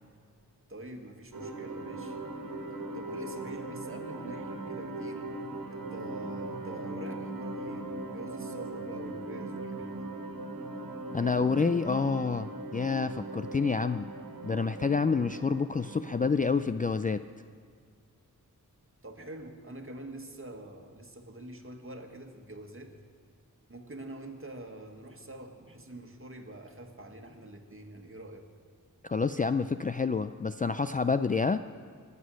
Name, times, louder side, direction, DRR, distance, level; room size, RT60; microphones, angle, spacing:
voice 1, 0.7-2.2 2.9-5.2 5.7-10.1 19.0-22.9 23.7-28.5, right 1 dB, 40° right, 4 dB, 1.7 m, -45 dB
sound 1, 1.3-16.3, right 2 dB, 70° right, 1.7 m, -39 dB
voice 2, 11.1-14.1 14.4-17.2 29.0-31.6, left 4 dB, 25° left, 10 dB, 0.4 m, -28 dB
22.0 x 8.3 x 6.4 m, 2.1 s
wide cardioid pair, 60°, 35 cm